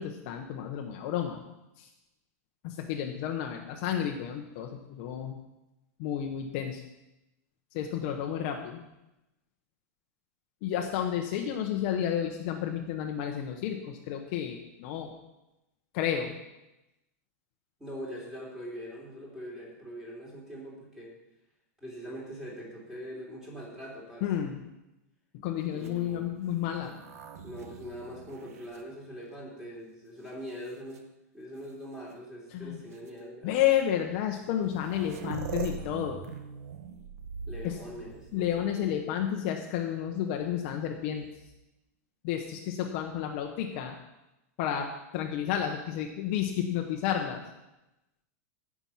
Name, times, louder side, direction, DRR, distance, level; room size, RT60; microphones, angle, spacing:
voice 1, 0.0-1.4 1.8-1.9 2.6-5.4 6.0-6.8 7.7-8.8 10.6-15.1 15.9-16.3 24.2-24.6 25.4-26.9 32.5-32.8 33.4-36.3 37.6-37.8 38.3-41.3 42.2-43.9 44.6-47.4, left 10 dB, 40° left, 3 dB, 0.9 m, -31 dB
voice 2, 17.8-21.1 21.8-24.2 25.7-26.3 27.4-31.0 31.3-33.5 37.5-39.0, equal, 5° right, -4 dB, 3.2 m, -42 dB
sound 1, 25.7-29.6 30.3-31.0 32.1-32.2 32.9-33.1 34.2-34.3 34.5-39.0 40.9-41.6, right 6 dB, 70° right, 1.1 m, -43 dB
16.5 x 6.0 x 5.7 m, 0.95 s
supercardioid pair, 165°, 8 cm